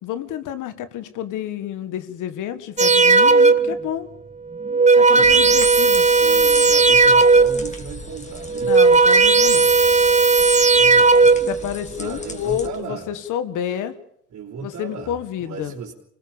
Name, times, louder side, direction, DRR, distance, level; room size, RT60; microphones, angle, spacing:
voice 1, 0.0-4.1 5.0-6.1 8.6-9.7 11.5-14.0 14.6-15.7, left 10 dB, 90° left, 11 dB, 1.7 m, -29 dB
sound 1, 2.8-3.8 4.5-7.7 8.4-11.6, right 4 dB, 25° right, 1.5 m, -15 dB
voice 2, 5.1-5.6 6.2-8.7 10.7-11.4 11.9-13.1 14.3-15.9, right 6 dB, 65° right, -3 dB, 3.9 m, -36 dB
sound 2, 5.2-12.7, left 2 dB, 25° left, 3.7 m, -38 dB
25.5 x 19.5 x 7.2 m, 0.68 s
cardioid pair, 90°, 30 cm